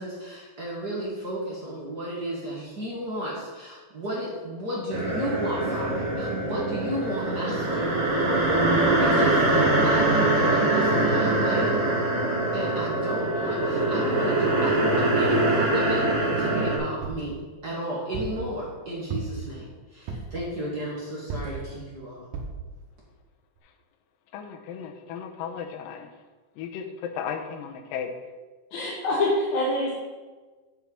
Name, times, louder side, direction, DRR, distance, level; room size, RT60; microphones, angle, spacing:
voice 1, 0.0-7.9 9.0-11.7 12.5-22.3, equal, 40° right, -5 dB, 1.6 m, -33 dB
sound 1, 4.9-16.8, right 2 dB, 55° right, 3.6 m, -23 dB
sound 2, 17.0-17.3 18.1-18.4 19.1-19.5 20.1-20.4 21.3-21.6 22.3-22.6 23.2-23.3 23.6-23.7, right 4 dB, 75° right, 2.9 m, -34 dB
voice 2, 24.3-26.1 26.6-28.1, left 7 dB, 80° left, 5 dB, 2.4 m, -35 dB
voice 3, 28.7-29.9, left 1 dB, 60° left, -4 dB, 2.2 m, -25 dB
7.5 x 7.0 x 5.4 m, 1.3 s
omnidirectional pair, 4.3 m